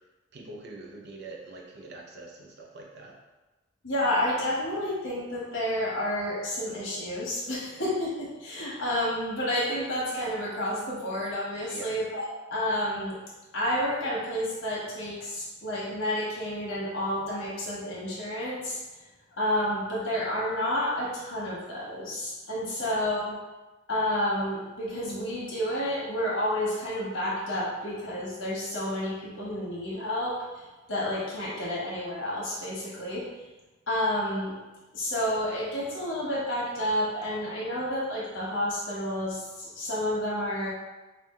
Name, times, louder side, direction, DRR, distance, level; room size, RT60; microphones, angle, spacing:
voice 1, 0.3-3.1 11.7-11.9 22.8-22.9, right 2 dB, 60° right, 0 dB, 0.7 m, -44 dB
voice 2, 3.8-12.2 12.5-13.2 13.5-18.8 19.4-23.4 23.9-33.3 33.9-34.6 34.9-40.7, left 1 dB, 75° left, -7 dB, 1.1 m, -30 dB
4.4 x 2.4 x 3.6 m, 1.2 s
head